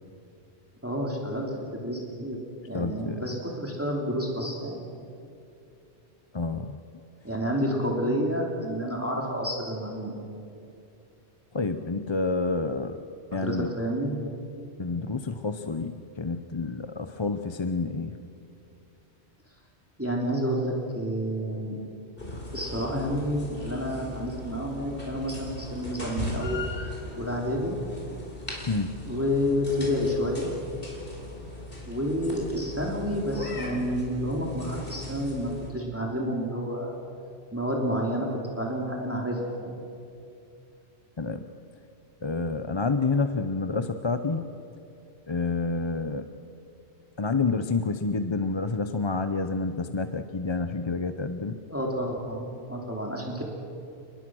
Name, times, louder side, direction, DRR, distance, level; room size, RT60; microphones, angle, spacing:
voice 1, 0.8-2.4 2.7-4.8 7.2-10.2 13.3-14.1 20.0-21.8 22.5-26.8 27.2-27.8 29.1-30.5 31.9-37.0 37.5-39.8 51.7-53.4, equal, 10° right, -1 dB, 3.1 m, -29 dB
voice 2, 2.7-3.4 6.3-6.8 11.5-13.0 13.3-13.7 14.8-18.2 28.7-29.0 41.2-41.5 42.2-44.5 45.3-46.3 47.2-51.6, left 4 dB, 30° left, 9 dB, 0.7 m, -29 dB
sound 1, 22.2-35.7, left 1 dB, 55° left, 4.7 m, -38 dB
29.0 x 20.5 x 6.3 m, 2.6 s
omnidirectional pair, 1.1 m